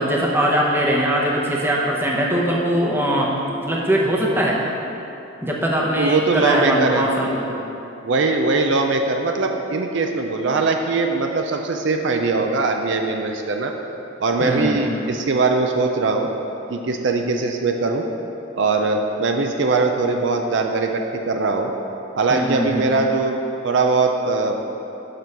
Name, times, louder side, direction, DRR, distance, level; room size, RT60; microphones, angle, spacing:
voice 1, 0.0-3.3 3.7-4.6 5.4-7.5 14.4-14.8 22.3-22.9, equal, 10° right, -3 dB, 0.8 m, -21 dB
voice 2, 6.0-7.1 7.5-7.6 8.0-13.7 14.2-16.3 16.7-18.0 18.6-21.7 22.2-23.3 23.6-24.6, right 3 dB, 65° right, 4 dB, 0.5 m, -21 dB
6.6 x 6.1 x 5.3 m, 2.9 s
head